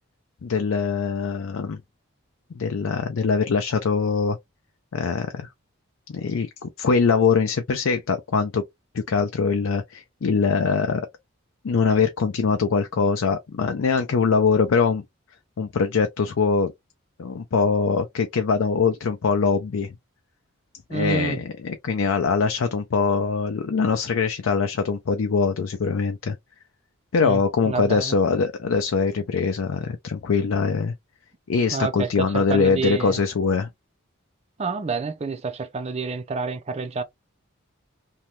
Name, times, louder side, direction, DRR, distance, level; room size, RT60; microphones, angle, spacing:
voice 1, 0.4-1.8 2.5-4.4 4.9-5.5 6.1-8.6 8.9-11.1 11.6-15.0 15.6-16.7 17.2-19.9 20.9-26.4 27.1-30.9 31.5-33.7, left 5 dB, 70° left, 0.4 m, -22 dB
voice 2, 20.9-21.4 27.2-27.4 27.7-28.2 31.7-33.2 34.6-37.0, right 4 dB, 30° right, 0.4 m, -28 dB
2.7 x 2.2 x 3.0 m
head